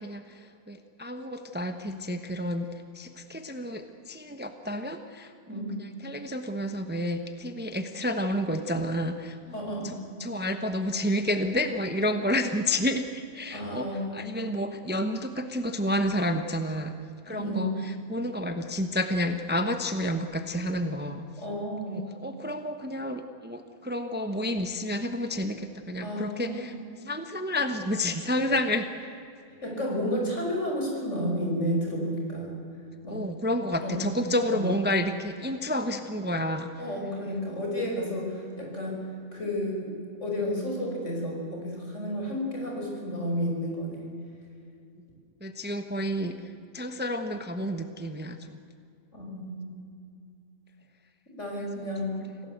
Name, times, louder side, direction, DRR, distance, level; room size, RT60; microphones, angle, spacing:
voice 1, 0.0-9.6 9.8-13.9 14.1-16.9 17.2-21.2 21.9-26.7 27.0-29.2 33.1-36.7 45.4-48.6 51.8-51.9, left 1 dB, 10° right, 7 dB, 1.0 m, -30 dB
voice 2, 9.5-10.0 13.5-14.2 17.3-17.8 21.4-22.1 26.0-26.8 29.6-32.6 33.0-33.2 33.8-34.1 34.5-34.7 36.8-39.0 39.3-39.9 40.2-44.1 49.1-49.7 51.3-52.2, equal, 60° left, -1 dB, 6.0 m, -31 dB
26.5 x 17.5 x 8.1 m, 2.5 s
omnidirectional pair, 1.4 m